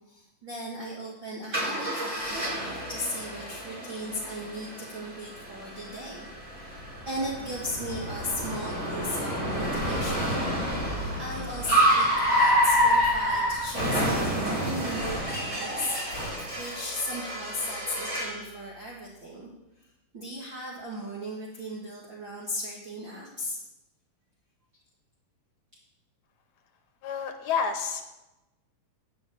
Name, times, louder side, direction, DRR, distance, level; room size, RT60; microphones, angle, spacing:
voice 1, 0.1-6.3 6.6-10.4 11.2-16.3 16.6-19.5 20.1-23.6, left 1 dB, 40° right, -4 dB, 2.2 m, -36 dB
Car, 1.5-18.4, equal, 25° right, 5.1 m, -28 dB
voice 2, 27.0-28.2, left 6 dB, 70° left, 6 dB, 2.1 m, -29 dB
11.0 x 6.5 x 8.6 m, 0.99 s
omnidirectional pair, 3.9 m